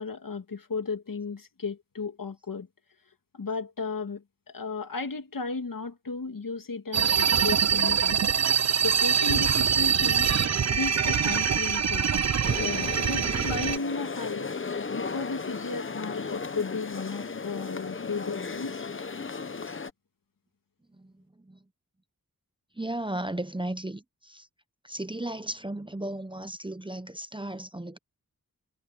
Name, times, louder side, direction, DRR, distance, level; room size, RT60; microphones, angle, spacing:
voice 1, 0.0-2.7 3.3-4.2 4.5-8.2 8.8-10.4 10.7-12.1 12.6-14.5 14.9-18.8, left 4 dB, 70° left, 2.5 m, -34 dB
sound 1, 6.9-13.8, right 7 dB, 50° right, 0.6 m, -24 dB
sound 2, 12.4-19.9, left 4 dB, 35° left, 0.9 m, -35 dB
voice 2, 20.9-21.6 22.7-24.5 24.8-28.0, right 1 dB, 15° right, 0.8 m, -35 dB
wide cardioid pair, 85°, 34 cm